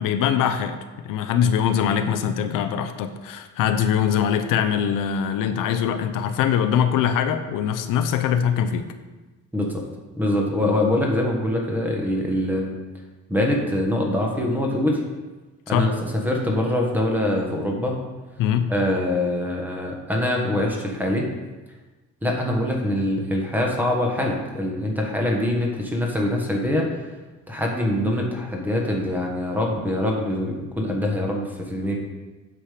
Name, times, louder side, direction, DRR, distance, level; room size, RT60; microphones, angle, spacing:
voice 1, 0.0-8.8 15.7-15.9 18.4-18.7, left 8 dB, 85° left, 8 dB, 0.8 m, -22 dB
voice 2, 10.2-12.7 13.3-15.0 15.7-18.0 18.7-21.3 22.2-26.9 27.5-32.0, left 1 dB, 5° right, 0 dB, 1.3 m, -24 dB
8.8 x 6.3 x 5.0 m, 1.2 s
cardioid pair, 175°, 32 cm